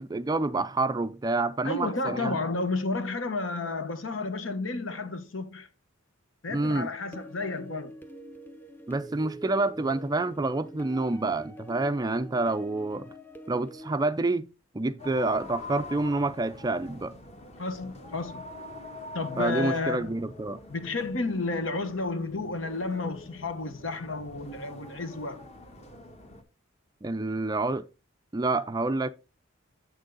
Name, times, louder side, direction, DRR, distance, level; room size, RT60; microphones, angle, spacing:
voice 1, 0.0-2.4 6.5-6.9 8.9-13.1 13.5-14.5 14.7-17.2 19.4-20.6 27.0-27.8 28.3-29.1, right 2 dB, 20° right, 0.4 m, -28 dB
voice 2, 1.6-5.7 6.4-7.9 17.6-18.5 19.1-20.1 20.7-25.4, left 3 dB, 70° left, 1.2 m, -31 dB
sound 1, 7.1-13.9, equal, 10° left, 0.7 m, -45 dB
sound 2, 15.0-26.4, left 2 dB, 35° left, 1.4 m, -45 dB
8.1 x 6.4 x 3.8 m
head